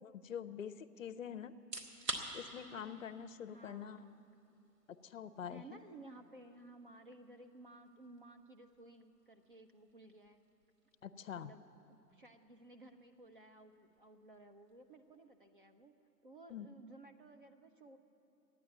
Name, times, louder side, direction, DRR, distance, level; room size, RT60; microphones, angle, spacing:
voice 1, 0.0-1.5 2.3-4.0 4.9-5.8 11.0-11.5 16.5-16.7, left 8 dB, 55° left, 13 dB, 0.6 m, -45 dB
sound 1, 1.6-16.4, right 2 dB, 75° right, 2.0 m, -52 dB
voice 2, 3.5-4.2 5.5-10.4 11.3-11.6 11.9-15.9 16.2-18.0, right 2 dB, 35° right, 6 dB, 0.4 m, -57 dB
13.0 x 9.6 x 9.5 m, 2.8 s
figure-of-eight pair, 130°, 49 cm